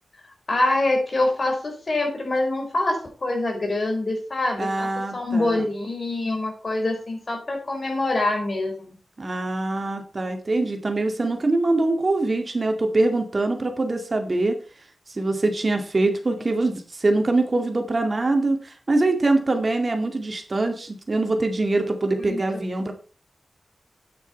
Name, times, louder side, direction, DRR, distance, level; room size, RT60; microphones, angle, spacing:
voice 1, 0.5-9.0 22.2-22.4, left 2 dB, 50° left, 3 dB, 4.8 m, -25 dB
voice 2, 4.6-5.7 9.2-14.6 15.1-22.9, right 2 dB, 45° right, 5 dB, 2.3 m, -23 dB
9.6 x 9.0 x 4.5 m, 0.35 s
wide cardioid pair, 65°, 0 cm